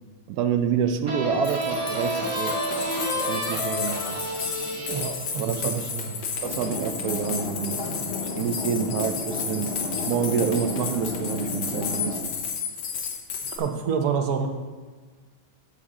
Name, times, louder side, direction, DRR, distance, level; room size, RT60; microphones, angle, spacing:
voice 1, 0.3-2.5 3.1-4.2 5.4-5.9 6.4-7.8 8.4-9.7 10.1-12.2, right 7 dB, 90° right, 7 dB, 0.8 m, -27 dB
sound 1, 1.0-6.5, equal, 25° right, 0.8 m, -30 dB
sound 2, 1.4-13.6, left 6 dB, 70° left, 1.6 m, -33 dB
voice 2, 4.9-6.2 13.6-14.5, right 6 dB, 60° right, 5 dB, 1.1 m, -28 dB
sound 3, 6.4-12.2, left 3 dB, 50° left, 0.7 m, -33 dB
8.5 x 7.0 x 3.7 m, 1.4 s
omnidirectional pair, 2.2 m